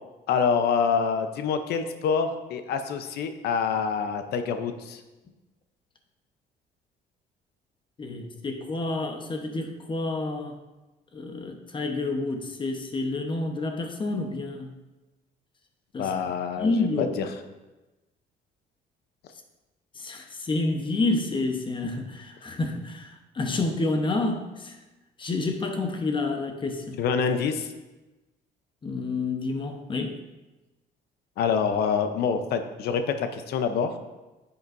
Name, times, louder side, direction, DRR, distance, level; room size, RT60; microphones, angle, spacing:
voice 1, 0.3-5.0 16.0-17.3 27.0-27.7 31.4-34.0, left 6 dB, 70° left, 8 dB, 0.7 m, -26 dB
voice 2, 8.0-10.5 11.1-14.7 15.9-16.1 16.6-17.1 20.0-23.1 23.3-24.7 25.2-27.0 28.8-30.1, left 3 dB, 30° left, 4 dB, 0.9 m, -29 dB
10.0 x 6.8 x 2.6 m, 1.1 s
cardioid pair, 110°, 17 cm